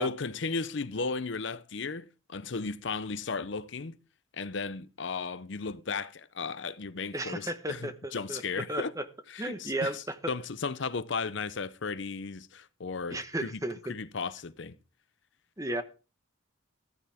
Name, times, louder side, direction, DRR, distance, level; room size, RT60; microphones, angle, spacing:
voice 1, 0.0-4.0 4.3-8.9 9.3-13.6 13.9-14.8, left 4 dB, 60° left, 0.7 m, -35 dB
voice 2, 7.1-8.4 8.7-9.0 9.4-10.3 13.1-13.8 15.6-15.8, right 1 dB, 15° right, 1.2 m, -34 dB
14.5 x 14.0 x 3.5 m
head